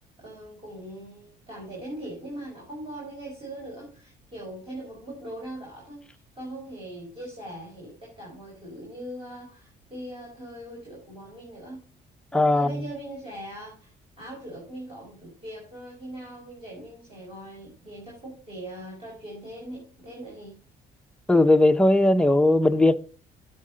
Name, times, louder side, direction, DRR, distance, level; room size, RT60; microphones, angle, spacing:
voice 1, 0.2-6.0 6.3-11.8 12.5-20.5 21.6-21.7, right 1 dB, 30° right, 5.2 m, -40 dB
voice 2, 12.3-12.9 21.3-23.0, left 2 dB, 5° left, 0.6 m, -19 dB
11.5 x 7.6 x 3.9 m
cardioid pair, 110°, 17 cm